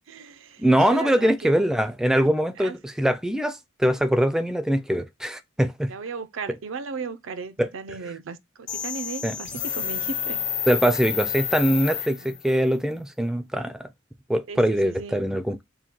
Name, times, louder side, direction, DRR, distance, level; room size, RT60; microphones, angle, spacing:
voice 1, 0.1-0.7 0.9-1.5 2.6-2.8 5.9-10.4 12.2-12.4 14.5-15.4, right 5 dB, 75° right, 0.5 m, -36 dB
voice 2, 0.6-5.9 7.6-7.7 9.2-9.3 10.7-13.9 14.3-15.6, equal, 5° right, 0.3 m, -22 dB
sound 1, 8.7-12.5, left 9 dB, 40° left, 0.8 m, -30 dB
3.7 x 2.2 x 4.4 m
head